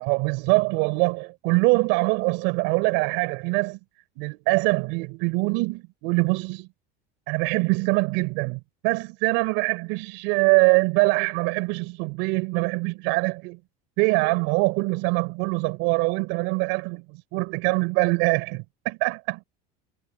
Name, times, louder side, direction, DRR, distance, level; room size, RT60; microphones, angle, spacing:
voice 1, 0.0-3.8 4.2-6.7 7.3-13.6 14.0-19.4, right 28 dB, 65° right, 5.3 m, -23 dB
supercardioid pair, 135°, 21 cm